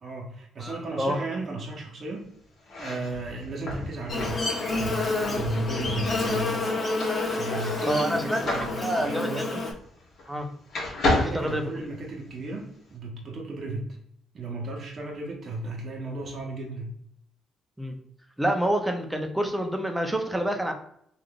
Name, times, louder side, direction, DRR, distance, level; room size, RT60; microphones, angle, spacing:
voice 1, 0.0-2.3 2.8-4.4 4.7-6.6 7.3-9.6 11.0-14.0 14.3-16.9, right 2 dB, 50° right, -1 dB, 0.8 m, -34 dB
voice 2, 0.6-1.3 7.9-8.4 8.8-9.3 10.3-10.5 11.3-11.7 17.8-17.9 18.4-20.7, right 1 dB, 5° right, 4 dB, 0.6 m, -27 dB
sound 1, 2.6-10.4 10.7-12.3, left 2 dB, 65° left, 1.2 m, -32 dB
Buzz, 4.1-9.7, left 3 dB, 35° left, 0.8 m, -29 dB
3.5 x 2.5 x 2.3 m, 0.70 s
cardioid pair, 90°, 0 cm